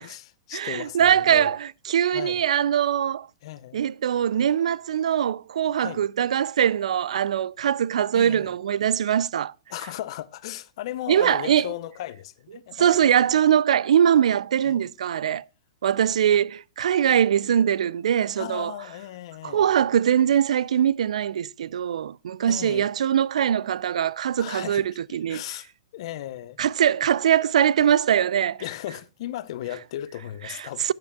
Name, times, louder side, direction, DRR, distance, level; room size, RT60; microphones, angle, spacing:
voice 1, 0.0-1.6 2.1-2.4 3.4-3.8 5.7-6.0 8.1-8.5 9.7-13.0 14.6-14.8 16.3-16.4 18.4-19.7 22.5-22.9 24.4-26.6 28.6-30.9, left 13 dB, 55° left, 0.6 m, -36 dB
voice 2, 0.5-3.3 3.7-9.5 11.1-11.7 12.7-15.4 15.8-18.7 19.4-25.4 26.6-28.6 30.5-30.9, right 9 dB, 80° right, 0.3 m, -22 dB
12.5 x 8.7 x 2.3 m
hypercardioid pair, 150°, 3 cm